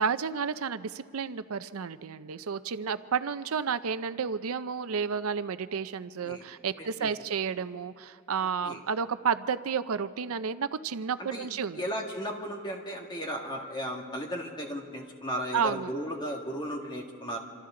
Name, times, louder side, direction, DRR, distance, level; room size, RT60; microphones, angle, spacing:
voice 1, 0.0-11.8 15.5-15.9, right 6 dB, 80° right, 13 dB, 0.5 m, -31 dB
voice 2, 6.8-7.1 8.6-8.8 11.2-11.5 11.8-17.4, equal, 20° left, 1 dB, 2.0 m, -35 dB
26.5 x 26.0 x 3.8 m, 2.2 s
head